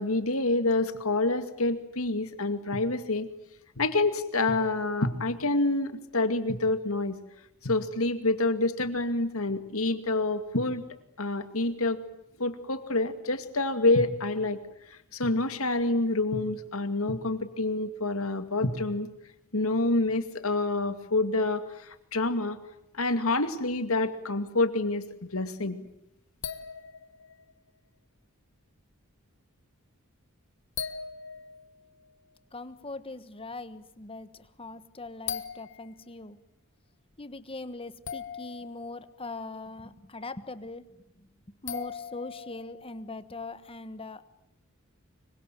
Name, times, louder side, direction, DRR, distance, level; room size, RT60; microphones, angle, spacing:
voice 1, 0.0-3.3 3.8-7.2 7.6-10.8 11.2-12.0 12.4-14.6 15.1-19.1 19.5-21.6 22.1-22.6 23.0-25.0 25.3-25.8, left 2 dB, 75° left, 9 dB, 2.3 m, -27 dB
sound 1, 25.9-26.0 26.4-27.7 30.8-32.4 34.5-34.6 35.3-36.1 38.0-39.4 41.7-43.2, left 7 dB, 55° left, 1.5 m, -40 dB
voice 2, 32.5-36.4 37.2-40.8 41.2-44.3, left 2 dB, 25° left, 12 dB, 1.4 m, -41 dB
25.5 x 23.5 x 9.2 m, 0.81 s
head